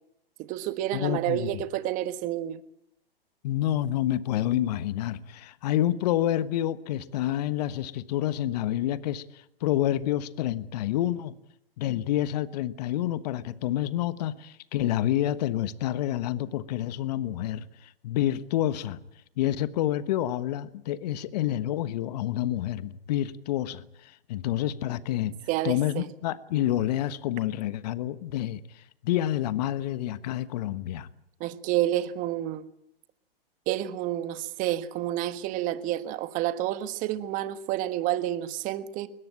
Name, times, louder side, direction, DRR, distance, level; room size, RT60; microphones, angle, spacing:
voice 1, 0.4-2.6 25.5-26.1 31.4-32.6 33.7-39.1, right 13 dB, 25° right, 1.4 m, -29 dB
voice 2, 0.9-1.6 3.4-11.3 11.8-19.0 19.4-25.3 25.6-31.1, left 12 dB, 45° left, 1.2 m, -28 dB
22.0 x 20.0 x 8.9 m
hypercardioid pair, 130°, 30 cm